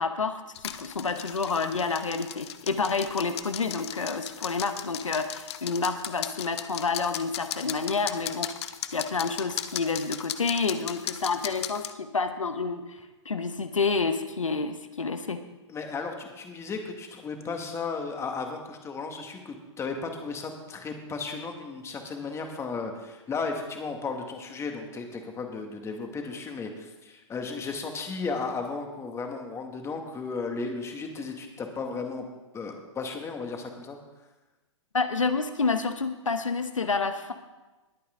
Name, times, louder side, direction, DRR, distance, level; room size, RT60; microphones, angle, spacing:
voice 1, 0.0-8.5 8.9-13.0 13.2-15.4 34.9-37.3, left 4 dB, 90° left, 8 dB, 1.2 m, -29 dB
sound 1, 0.5-11.9, left 11 dB, 55° left, 0.8 m, -37 dB
voice 2, 15.7-32.2 32.5-34.0, left 4 dB, 15° left, 4 dB, 2.0 m, -35 dB
20.5 x 8.5 x 3.8 m, 1.1 s
hypercardioid pair, 115°, 16 cm